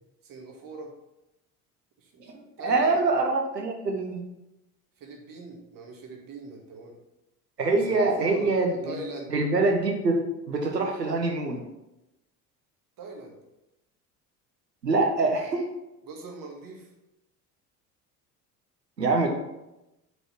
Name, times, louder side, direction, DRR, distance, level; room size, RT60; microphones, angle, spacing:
voice 1, 0.2-0.9 2.0-2.2 2.6-3.0 5.0-7.0 7.9-8.5 8.8-9.3 11.1-11.2 13.0-13.4 16.1-16.9, right 3 dB, 45° right, 1 dB, 2.3 m, -40 dB
voice 2, 2.2-4.2 7.6-9.0 9.3-10.2 10.5-11.6 14.8-15.6 19.0-19.3, right 3 dB, 85° right, 2 dB, 1.3 m, -25 dB
8.2 x 5.4 x 5.9 m, 0.94 s
figure-of-eight pair, 60°, 48 cm